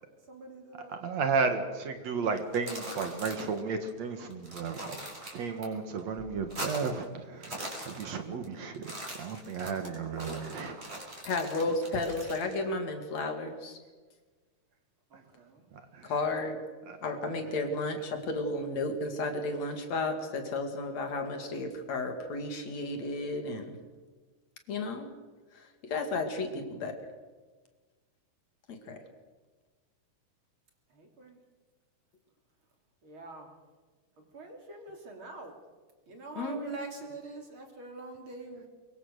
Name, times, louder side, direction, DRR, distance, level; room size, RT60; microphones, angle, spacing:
voice 1, 0.3-0.9 1.6-1.7 15.1-15.7 30.9-31.4 33.0-33.5 34.3-35.5 36.1-38.7, right 2 dB, 40° right, 3 dB, 3.9 m, -45 dB
voice 2, 0.9-5.0 5.3-8.9 9.2-10.8 15.9-16.1 16.9-17.0, right 5 dB, 60° right, 7 dB, 2.6 m, -33 dB
sound 1, 2.4-3.6 3.9-4.0 4.3-5.7 6.0-7.0 7.3-8.5 8.7-12.5, right 1 dB, 20° right, 5.6 m, -41 dB
voice 3, 11.2-13.8 16.0-16.6 17.0-23.7 24.7-25.1 25.5-27.0 28.7-29.0 36.4-36.7, left 2 dB, 60° left, 6 dB, 3.5 m, -33 dB
24.0 x 23.0 x 6.7 m, 1.4 s
omnidirectional pair, 3.6 m